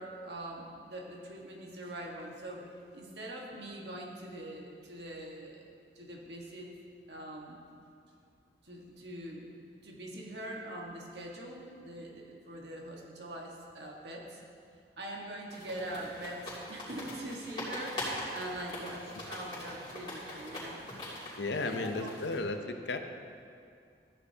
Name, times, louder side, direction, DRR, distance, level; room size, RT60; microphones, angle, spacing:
voice 1, 0.0-2.6 2.9-5.6 5.9-6.7 7.1-7.6 8.6-9.5 9.8-14.4 15.0-20.8 21.5-22.2, right 1 dB, 80° right, -1 dB, 1.6 m, -43 dB
sound 1, 15.5-22.4, left 1 dB, 30° left, 2.8 m, -42 dB
voice 2, 21.4-23.0, left 3 dB, 90° left, 6 dB, 0.7 m, -34 dB
14.0 x 9.8 x 2.9 m, 2.4 s
head